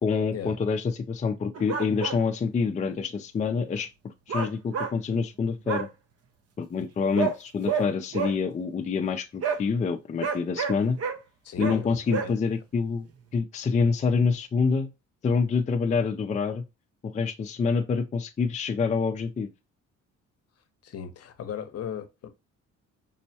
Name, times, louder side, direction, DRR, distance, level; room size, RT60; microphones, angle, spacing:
voice 1, 0.0-5.9 6.6-11.0 11.6-13.1 13.3-14.9 15.2-16.6 17.0-19.5, left 5 dB, 25° left, 0.4 m, -27 dB
sound 1, 1.5-2.2 4.3-4.9 5.7-5.9 7.1-7.3 7.7-7.9 8.1-8.3 9.4-9.6 10.2-11.2 11.6-11.8 12.1-12.3, right 6 dB, 55° right, 0.7 m, -28 dB
voice 2, 11.4-12.3 20.8-22.3, left 8 dB, 55° left, 0.7 m, -36 dB
5.4 x 2.1 x 2.7 m
cardioid pair, 90°, 30 cm